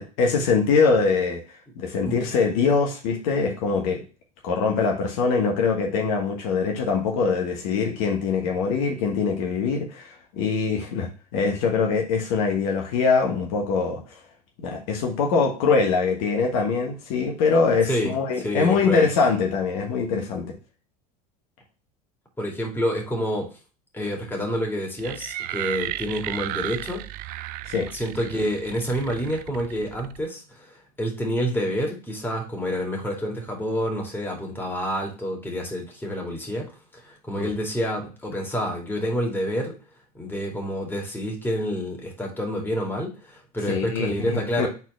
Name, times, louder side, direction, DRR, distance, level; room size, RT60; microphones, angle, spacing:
voice 1, 0.0-1.4 1.8-4.0 4.4-14.2 14.6-20.5 27.6-27.9 37.4-37.5 43.7-44.7, left 5 dB, 65° left, 2 dB, 1.4 m, -23 dB
voice 2, 17.9-19.1 22.4-23.5 23.9-27.0 27.9-39.7 40.1-44.7, equal, 10° left, 0 dB, 2.4 m, -28 dB
sound 1, 25.0-30.3, right 15 dB, 50° right, 0.4 m, -34 dB
4.5 x 4.2 x 5.6 m, 0.34 s
hypercardioid pair, 80°, 19 cm